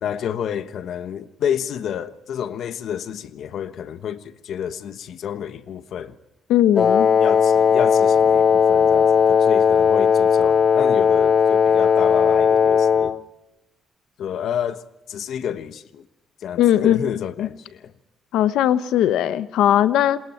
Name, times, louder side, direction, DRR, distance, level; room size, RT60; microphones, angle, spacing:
voice 1, 0.0-6.2 7.2-13.2 14.2-16.1 16.4-17.9, left 9 dB, 70° left, 1.2 m, -29 dB
voice 2, 6.5-7.1 16.6-17.0 17.4-17.5 18.3-20.2, left 11 dB, 85° left, 0.9 m, -18 dB
Wind instrument woodwind instrument, 6.8-13.2, left 7 dB, 45° left, 0.8 m, -17 dB
28.0 x 21.0 x 4.5 m
cardioid pair, 90°, 0 cm